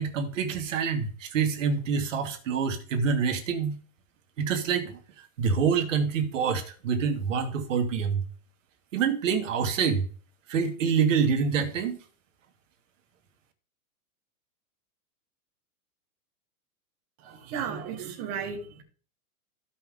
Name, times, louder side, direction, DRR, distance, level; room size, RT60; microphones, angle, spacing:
voice 1, 0.0-3.8 4.4-5.0 5.4-8.2 8.9-10.0 10.5-12.0, right 6 dB, 55° right, 1.8 m, -26 dB
voice 2, 17.2-18.8, right 7 dB, 15° right, 0.9 m, -35 dB
14.5 x 5.8 x 3.6 m
supercardioid pair, 175°, 45 cm